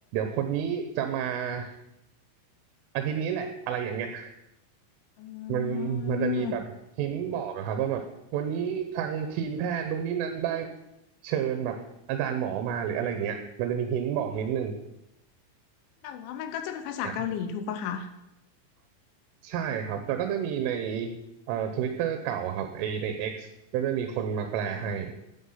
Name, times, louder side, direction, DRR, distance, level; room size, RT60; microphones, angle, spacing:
voice 1, 0.1-1.7 3.0-4.3 5.5-6.7 7.0-8.0 8.3-10.7 11.2-14.7 17.1-17.2 19.4-21.1 21.5-25.1, right 8 dB, 90° right, 6 dB, 3.5 m, -30 dB
voice 2, 5.2-6.6 16.0-18.1 24.7-24.9, left 8 dB, 80° left, 7 dB, 3.0 m, -33 dB
11.5 x 9.3 x 5.6 m, 0.87 s
omnidirectional pair, 5.6 m